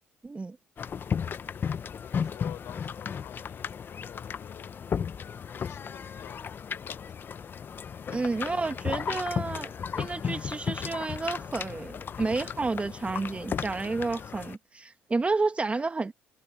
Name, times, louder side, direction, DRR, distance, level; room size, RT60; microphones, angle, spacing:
voice 1, 0.2-0.6 8.1-16.1, right 3 dB, 25° right, 1.6 m, -31 dB
sound 1, 0.8-14.6, left 7 dB, 40° left, 0.7 m, -35 dB
voice 2, 2.0-4.8 5.6-7.3 8.2-9.2, left 13 dB, 70° left, 4.2 m, -50 dB
supercardioid pair, 80°, 5 cm